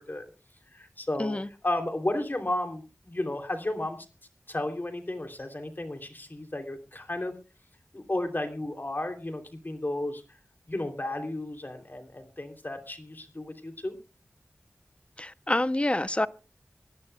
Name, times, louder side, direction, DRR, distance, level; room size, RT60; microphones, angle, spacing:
voice 1, 0.7-1.4 1.6-4.0 4.5-7.3 7.9-10.2 10.7-13.9, left 1 dB, 40° left, 3.1 m, -33 dB
voice 2, 15.2-16.3, left 1 dB, 25° left, 0.7 m, -27 dB
25.0 x 11.0 x 2.3 m
wide cardioid pair, 50°, 5 cm